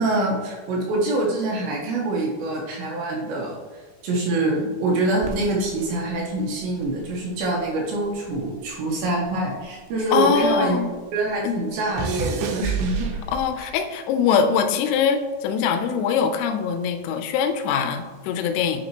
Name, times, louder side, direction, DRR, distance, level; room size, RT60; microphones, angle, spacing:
voice 1, 0.0-3.6 4.0-10.8 11.1-13.2 13.6-13.7, right 2 dB, 75° right, -2 dB, 2.9 m, -25 dB
sound 1, 5.2-7.7 8.0-10.6 10.9-13.7 14.5-14.8, right 5 dB, 90° right, 2.5 m, -32 dB
voice 2, 10.1-10.9 11.4-11.6 13.3-18.8, left 6 dB, 90° left, 7 dB, 3.3 m, -22 dB
9.3 x 4.2 x 2.9 m, 1.4 s
omnidirectional pair, 5.7 m